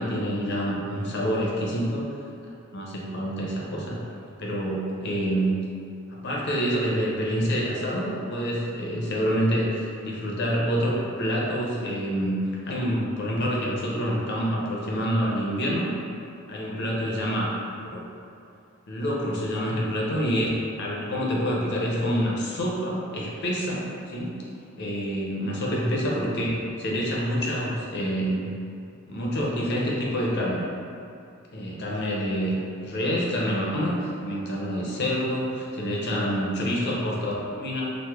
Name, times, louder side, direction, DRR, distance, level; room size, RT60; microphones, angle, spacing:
voice 1, 0.0-2.1 2.7-4.0 4.4-5.6 6.1-12.4 12.7-16.0 16.5-17.5 17.9-18.0 18.9-20.5 20.8-24.4 24.8-26.5 26.8-28.5 29.1-30.6 31.5-32.5 32.8-37.8, equal, 55° left, -4 dB, 0.6 m, -27 dB
3.0 x 2.0 x 3.4 m, 2.6 s
head